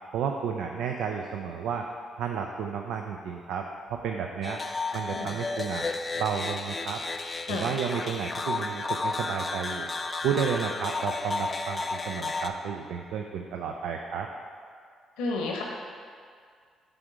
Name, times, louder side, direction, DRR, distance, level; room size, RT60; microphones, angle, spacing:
voice 1, 0.1-1.9 2.2-4.6 4.9-5.9 6.1-7.0 7.5-9.9 10.2-14.3, right 7 dB, 70° right, 3 dB, 0.3 m, -32 dB
sound 1, 4.4-12.5, left 3 dB, 35° left, 0.4 m, -33 dB
voice 2, 15.2-15.6, left 3 dB, 80° left, 0 dB, 0.9 m, -31 dB
7.0 x 3.5 x 5.0 m, 2.1 s
hypercardioid pair, 45°, 0 cm